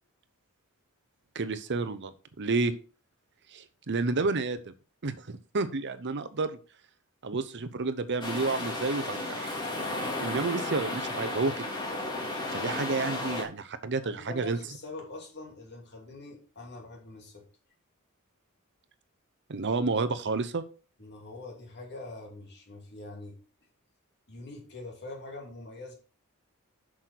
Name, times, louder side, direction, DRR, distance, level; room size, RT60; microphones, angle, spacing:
voice 1, 1.3-2.7 3.5-4.7 5.0-6.6 7.2-9.6 10.2-11.6 12.5-14.6 19.5-20.6, right 3 dB, 55° right, 13 dB, 0.8 m, -30 dB
sound 1, 8.2-13.4, left 2 dB, 20° left, 2.7 m, -33 dB
voice 2, 14.0-17.5 21.0-23.4 24.3-26.0, left 2 dB, 50° left, 1 dB, 2.8 m, -44 dB
8.0 x 6.3 x 4.5 m, 0.35 s
head